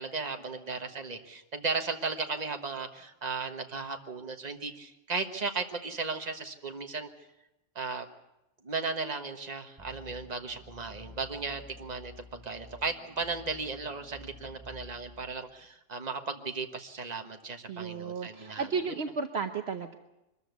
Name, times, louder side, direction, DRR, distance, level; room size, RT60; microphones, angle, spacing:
voice 1, 0.0-7.1 7.7-8.1 8.6-19.0, right 4 dB, 35° right, 5 dB, 1.5 m, -36 dB
sound 1, 9.8-15.3, left 2 dB, 15° right, 0.9 m, -51 dB
voice 2, 17.7-20.0, right 5 dB, 60° right, 6 dB, 1.1 m, -33 dB
23.5 x 14.0 x 8.2 m, 0.93 s
omnidirectional pair, 1.2 m